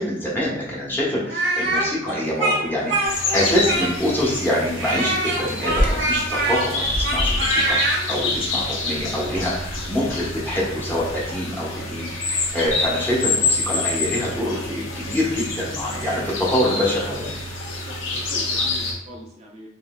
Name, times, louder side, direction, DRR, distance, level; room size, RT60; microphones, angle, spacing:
voice 1, 0.0-7.8 8.1-12.0 12.5-17.4, left 1 dB, 10° left, -6 dB, 0.9 m, -25 dB
Speech, 1.3-4.2 4.8-8.0, right 2 dB, 65° right, 1.0 m, -23 dB
sound 1, 3.0-18.9, left 3 dB, 90° left, 0.9 m, -27 dB
Bird vocalization bird call bird song, 5.7-11.3, equal, 45° left, 0.8 m, -30 dB
voice 2, 17.7-19.7, equal, 35° right, -2 dB, 0.6 m, -41 dB
5.5 x 2.6 x 2.2 m, 0.85 s
head